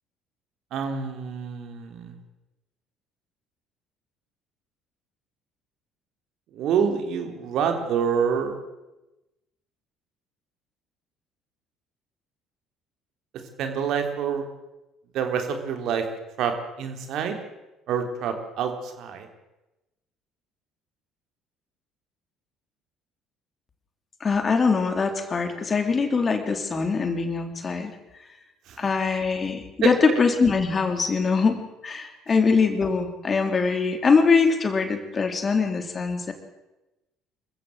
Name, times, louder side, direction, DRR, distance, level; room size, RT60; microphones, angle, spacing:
voice 1, 0.7-2.2 6.5-8.6 13.6-14.5 15.1-16.1 16.4-17.4 17.9-19.3 28.7-29.2 29.8-29.9, right 7 dB, 60° right, 5 dB, 3.5 m, -27 dB
voice 2, 24.2-27.9 28.8-31.6 31.8-36.3, left 4 dB, 35° left, 6 dB, 3.5 m, -22 dB
25.5 x 15.5 x 7.8 m, 1.0 s
hypercardioid pair, 55°, 0 cm